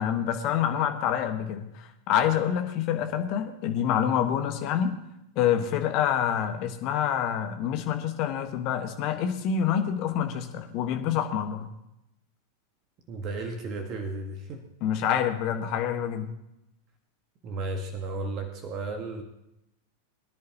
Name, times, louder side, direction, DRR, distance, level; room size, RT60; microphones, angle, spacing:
voice 1, 0.0-4.9 5.3-11.7 14.8-16.3, left 9 dB, 40° left, 6 dB, 1.5 m, -27 dB
voice 2, 13.1-14.6 17.4-19.2, right 2 dB, 35° right, 5 dB, 1.6 m, -34 dB
23.0 x 10.5 x 3.0 m, 0.88 s
figure-of-eight pair, 90°, 0 cm